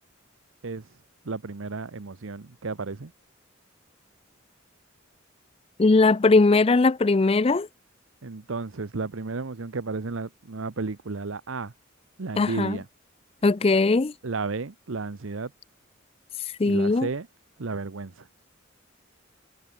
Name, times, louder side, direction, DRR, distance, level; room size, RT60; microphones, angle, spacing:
voice 1, 1.2-3.1 8.2-11.7 12.2-12.9 14.2-15.5 16.6-17.3 17.6-18.3, right 3 dB, 80° right, 0.9 m, -33 dB
voice 2, 5.8-7.7 12.4-12.8 13.4-14.1 16.6-17.1, left 3 dB, 30° left, 0.4 m, -19 dB
head